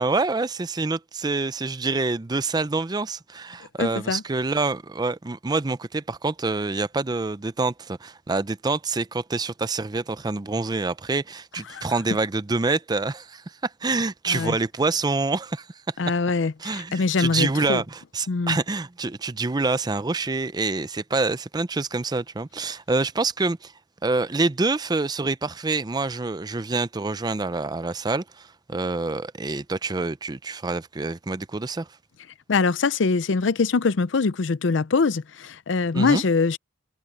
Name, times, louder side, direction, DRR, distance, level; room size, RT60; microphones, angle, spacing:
voice 1, 0.0-15.9 16.6-23.7 24.0-31.9 35.9-36.2, right 3 dB, 20° right, 0.5 m, -26 dB
voice 2, 3.8-4.2 11.7-11.9 14.3-14.5 16.0-17.8 18.3-18.6 32.5-36.6, left 4 dB, 65° left, 0.6 m, -23 dB
head